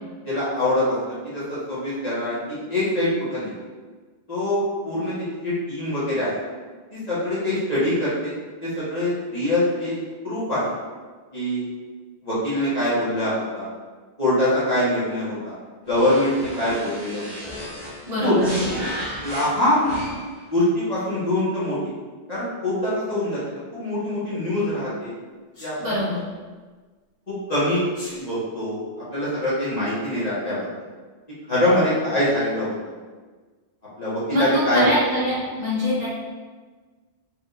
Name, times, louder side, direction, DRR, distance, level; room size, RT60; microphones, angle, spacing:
voice 1, 0.2-3.5 4.3-6.3 6.9-8.3 8.6-10.6 11.3-11.6 12.2-13.7 14.2-15.6 15.8-17.5 18.1-18.9 19.2-19.9 20.5-21.8 22.3-25.1 25.6-26.0 27.3-27.9 28.2-30.7 31.5-32.9 34.0-34.9, left 1 dB, 40° left, -11 dB, 1.4 m, -24 dB
sound 1, 15.9-20.4, equal, 25° right, 1.2 m, -34 dB
voice 2, 18.1-18.6 25.8-26.2 34.3-34.4 34.7-36.1, left 1 dB, 40° right, -10 dB, 1.4 m, -24 dB
Sneeze, 25.5-25.8 27.9-28.2, equal, 60° left, 1.3 m, -39 dB
4.5 x 3.5 x 2.5 m, 1.4 s
omnidirectional pair, 1.1 m